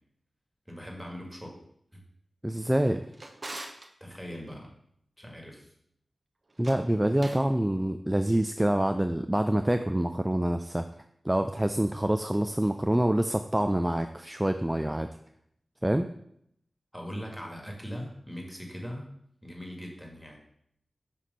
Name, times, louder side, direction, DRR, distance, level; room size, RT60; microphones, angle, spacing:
voice 1, 0.7-1.6 1.9-2.0 4.0-4.7 5.2-5.7 16.9-19.1 19.4-20.4, equal, 5° left, 0 dB, 1.8 m, -40 dB
voice 2, 2.4-3.0 6.6-10.9 11.2-15.1 15.8-16.1, right 1 dB, 15° right, 7 dB, 0.3 m, -26 dB
Drawer open or close, 2.7-3.9 6.5-7.5, right 2 dB, 50° right, 0.8 m, -43 dB
5.9 x 3.2 x 5.3 m, 0.72 s
cardioid pair, 45°, 0 cm